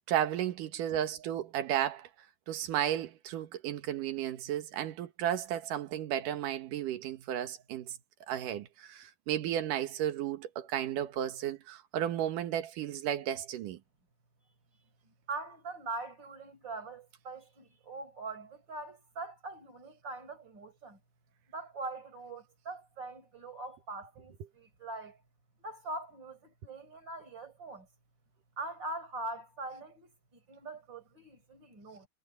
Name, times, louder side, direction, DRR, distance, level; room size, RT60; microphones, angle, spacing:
voice 1, 0.1-2.1 2.5-8.0 8.3-13.8, right 11 dB, 75° right, 2.9 m, -33 dB
voice 2, 15.1-21.0 21.5-25.2 25.6-27.9 28.6-32.1, right 2 dB, 30° right, 5.8 m, -42 dB
omnidirectional pair, 3.9 m